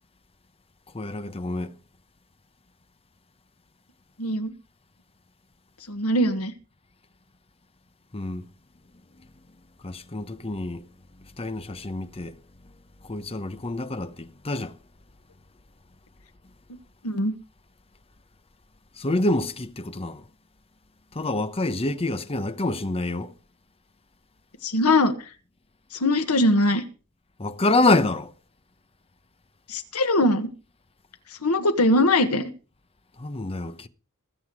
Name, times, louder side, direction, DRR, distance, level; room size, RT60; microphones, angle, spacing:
voice 1, 0.9-1.8 8.1-8.4 9.8-10.9 11.2-12.4 13.0-14.8 19.0-20.2 21.1-23.3 27.4-28.3 33.2-33.9, left 2 dB, 25° left, 0.9 m, -27 dB
voice 2, 4.2-4.5 5.9-6.5 17.0-17.3 24.6-25.2 25.9-26.8 29.7-30.5 31.4-32.5, left 1 dB, 85° left, 1.6 m, -21 dB
21.0 x 8.0 x 4.8 m
head